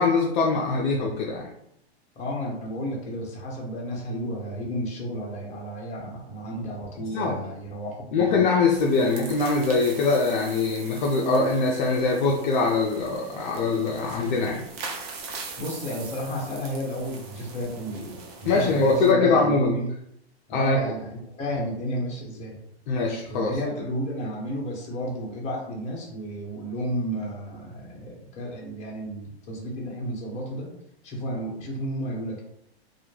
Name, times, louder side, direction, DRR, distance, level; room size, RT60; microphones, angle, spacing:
voice 1, 0.0-1.5 7.0-7.4 8.1-14.7 18.5-19.8 20.5-20.9 22.9-23.5, left 3 dB, 50° left, -1 dB, 0.4 m, -23 dB
voice 2, 2.1-8.4 15.6-19.9 20.5-22.6 23.3-30.7 31.0-32.4, equal, 20° left, -3 dB, 0.8 m, -32 dB
sound 1, 8.7-19.1, right 4 dB, 40° right, 0.5 m, -41 dB
2.2 x 2.0 x 3.1 m, 0.77 s
hypercardioid pair, 130°, 32 cm